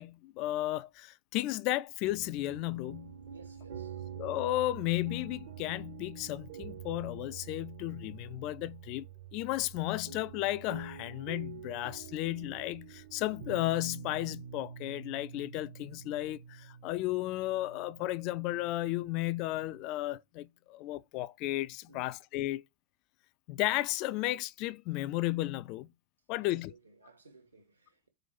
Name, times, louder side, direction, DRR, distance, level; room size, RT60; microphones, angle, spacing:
voice 1, 0.0-3.2 4.2-9.1 9.3-22.6 23.5-25.9 26.3-26.7, left 17 dB, 40° left, 0.3 m, -34 dB
sound 1, 2.0-19.8, right 8 dB, 55° right, 0.9 m, -47 dB
voice 2, 3.3-4.0 21.9-22.1 26.3-28.1, right 4 dB, 80° right, 1.6 m, -58 dB
4.8 x 3.9 x 5.8 m
figure-of-eight pair, 90°, 0 cm